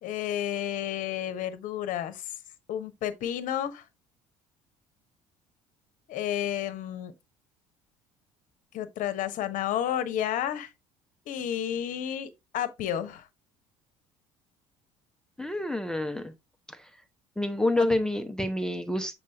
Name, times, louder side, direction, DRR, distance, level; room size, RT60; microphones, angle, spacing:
voice 1, 0.0-2.4 2.7-3.8 6.1-7.1 8.7-10.7 11.3-13.3 17.8-17.9, left 10 dB, 50° left, 1.0 m, -31 dB
voice 2, 15.4-16.3 16.7-16.9 17.4-19.1, left 1 dB, 5° left, 0.7 m, -28 dB
7.6 x 3.8 x 3.4 m
figure-of-eight pair, 55°, 18 cm